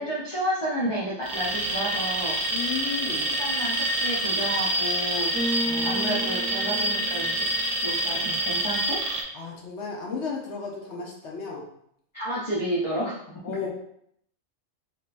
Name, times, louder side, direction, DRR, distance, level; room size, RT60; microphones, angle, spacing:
voice 1, 0.0-2.4 3.2-5.3 5.8-7.4 7.8-9.0 12.1-13.1 13.5-13.6, equal, 40° left, -7 dB, 0.4 m, -30 dB
Alarm, 1.2-9.2, right 1 dB, 60° right, 0.9 m, -27 dB
voice 2, 2.5-3.3 5.6-6.0 9.3-11.6 13.4-13.7, left 5 dB, 65° left, -1 dB, 0.9 m, -34 dB
Bass guitar, 5.3-7.7, equal, 15° right, 1.2 m, -32 dB
3.5 x 2.7 x 2.5 m, 0.70 s
omnidirectional pair, 1.4 m